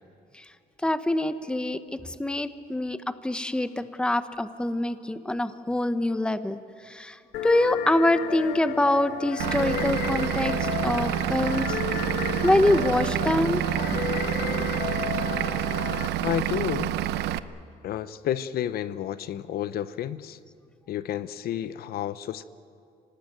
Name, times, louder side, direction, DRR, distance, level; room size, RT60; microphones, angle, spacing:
voice 1, 0.8-6.6 6.8-11.8 12.4-13.6, left 1 dB, 5° left, 11 dB, 1.0 m, -25 dB
sound 1, 7.3-16.1, left 11 dB, 85° left, 1.2 m, -33 dB
Vehicle / Engine, 9.4-17.4, right 12 dB, 80° right, 0.7 m, -28 dB
voice 2, 16.2-16.9 17.8-20.4 20.9-22.4, left 11 dB, 65° left, 15 dB, 0.8 m, -30 dB
25.5 x 18.5 x 9.1 m, 2.5 s
cardioid pair, 110°, 17 cm